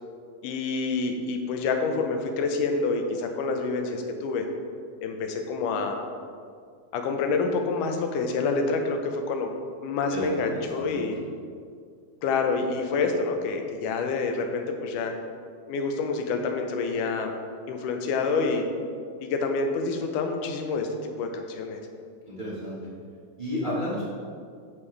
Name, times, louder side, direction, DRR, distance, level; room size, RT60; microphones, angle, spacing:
voice 1, 0.4-4.5 5.0-6.0 6.9-9.5 9.8-11.2 12.2-15.1 15.7-17.3 17.7-18.6 19.2-20.9 21.2-21.8, left 4 dB, 90° left, 4 dB, 2.3 m, -27 dB
voice 2, 10.1-11.0 22.3-22.8 23.4-24.1, left 1 dB, 25° right, -8 dB, 1.0 m, -32 dB
13.0 x 5.5 x 3.3 m, 2.2 s
omnidirectional pair, 3.5 m